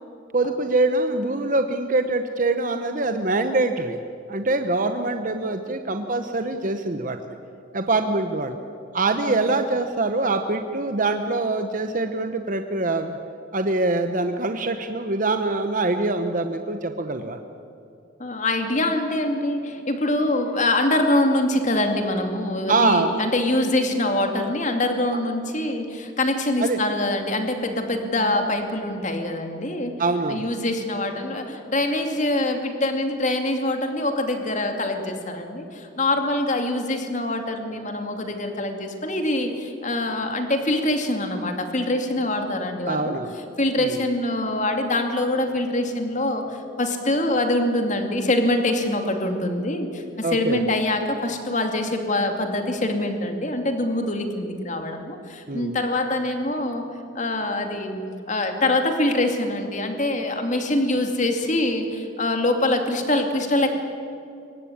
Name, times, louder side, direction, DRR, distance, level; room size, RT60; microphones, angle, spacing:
voice 1, 0.3-4.0 4.3-7.2 7.7-8.5 8.9-13.2 13.5-17.4 22.7-23.2 26.6-26.8 30.0-30.4 42.9-43.3 43.8-44.0 50.2-50.6 55.5-55.7, right 2 dB, 45° right, 7 dB, 1.0 m, -24 dB
voice 2, 18.2-29.9 30.3-43.2 43.6-56.8 57.1-63.7, left 1 dB, 40° left, 5 dB, 2.5 m, -24 dB
23.5 x 19.0 x 8.7 m, 2.8 s
head